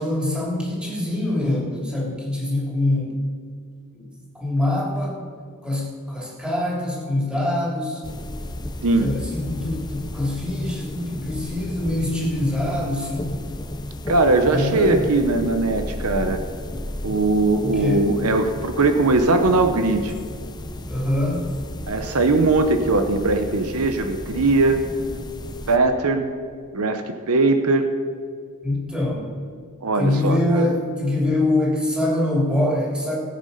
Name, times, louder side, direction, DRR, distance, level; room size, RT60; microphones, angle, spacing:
voice 1, 0.0-3.2 3.9-4.0 4.3-5.2 5.6-8.0 9.0-13.3 14.5-15.0 17.6-18.1 20.9-21.4 28.6-29.3 30.0-33.2, left 1 dB, 5° right, -4 dB, 3.3 m, -24 dB
sound 1, 8.0-25.8, left 1 dB, 20° left, 0.7 m, -34 dB
voice 2, 14.1-16.4 17.0-20.1 21.9-24.8 25.7-26.3 26.7-27.9 29.8-30.6, right 3 dB, 75° right, 7 dB, 0.9 m, -20 dB
18.0 x 8.4 x 5.6 m, 2.1 s
head